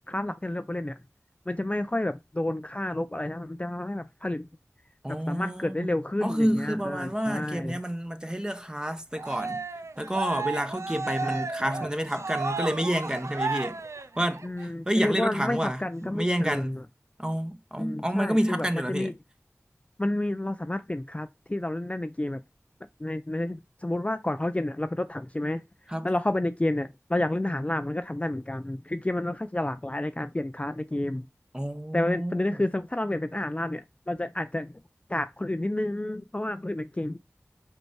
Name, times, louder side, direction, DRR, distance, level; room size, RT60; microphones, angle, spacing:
voice 1, 0.1-0.9 1.5-4.5 5.1-7.8 11.2-11.9 14.4-16.8 17.8-19.1 20.0-22.4 23.0-25.6 26.0-31.3 31.9-34.8 35.1-37.2, left 1 dB, 25° left, 0.4 m, -30 dB
voice 2, 5.0-5.9 6.2-9.6 10.0-13.8 14.2-16.8 17.2-19.1 25.9-26.1 31.5-32.6, equal, 15° right, 1.1 m, -29 dB
Cheering, 9.2-14.6, right 3 dB, 75° right, 0.5 m, -33 dB
5.2 x 4.6 x 4.6 m
wide cardioid pair, 45°, 5 cm